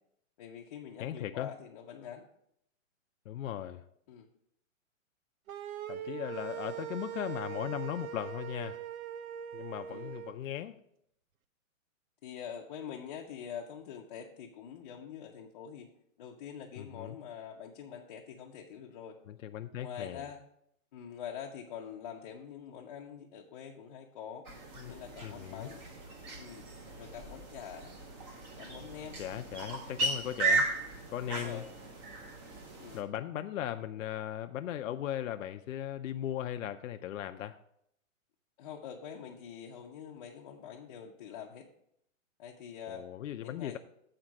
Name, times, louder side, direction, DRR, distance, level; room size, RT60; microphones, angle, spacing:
voice 1, 0.4-2.3 4.1-4.3 9.9-10.2 12.2-15.9 16.2-19.2 19.8-20.4 20.9-24.4 24.8-25.8 26.4-26.6 27.0-27.9 28.6-29.2 29.6-29.8 31.3-31.7 32.8-33.1 38.6-41.7 42.4-43.1 43.4-43.8, left 8 dB, 30° left, -1 dB, 0.5 m, -45 dB
voice 2, 1.0-1.5 3.3-3.8 5.9-8.8 9.5-10.8 16.8-17.2 19.3-20.2 24.8-24.9 25.2-25.7 29.2-30.7 31.1-31.6 32.9-37.6 42.9-43.8, left 11 dB, 75° left, 7 dB, 0.5 m, -38 dB
sound 1, 5.5-10.3, right 10 dB, 90° right, 0.7 m, -41 dB
sound 2, 24.5-33.0, right 3 dB, 20° right, 0.6 m, -36 dB
7.7 x 4.3 x 5.9 m, 0.73 s
hypercardioid pair, 150°, 40 cm